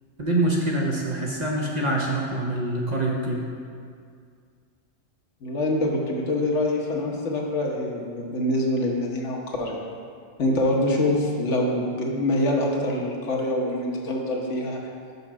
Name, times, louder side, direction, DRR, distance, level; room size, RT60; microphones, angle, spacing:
voice 1, 0.2-3.4, right 1 dB, 40° right, -2 dB, 0.8 m, -25 dB
voice 2, 5.4-9.8 10.4-14.8, left 1 dB, 70° left, -1 dB, 1.3 m, -25 dB
5.6 x 5.5 x 6.0 m, 2.1 s
omnidirectional pair, 1.3 m